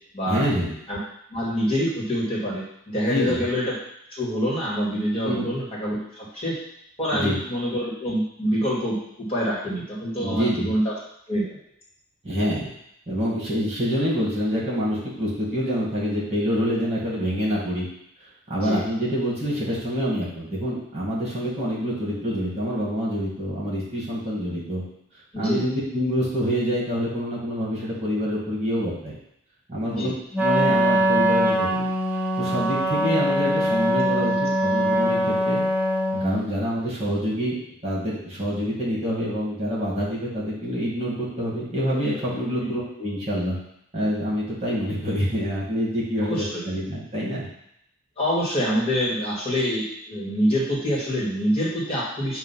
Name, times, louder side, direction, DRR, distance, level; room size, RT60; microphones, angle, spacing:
voice 1, 0.3-0.7 3.1-3.4 5.2-5.5 7.1-7.4 10.2-10.7 12.2-12.7 13.1-17.9 18.5-24.8 25.4-29.2 29.7-30.1 30.4-31.8 32.4-35.7 36.2-43.6 43.9-47.5, equal, 30° right, -6 dB, 1.9 m, -26 dB
voice 2, 1.3-3.7 4.1-6.6 7.0-10.9 11.3-11.4 18.6-18.8 25.3-25.6 29.9-30.1 42.6-42.7 46.2-46.6 48.2-52.4, equal, 30° left, -6 dB, 1.9 m, -26 dB
Wind instrument woodwind instrument, 30.3-36.4, equal, 10° right, 0.8 m, -22 dB
7.4 x 2.7 x 5.7 m, 0.75 s
head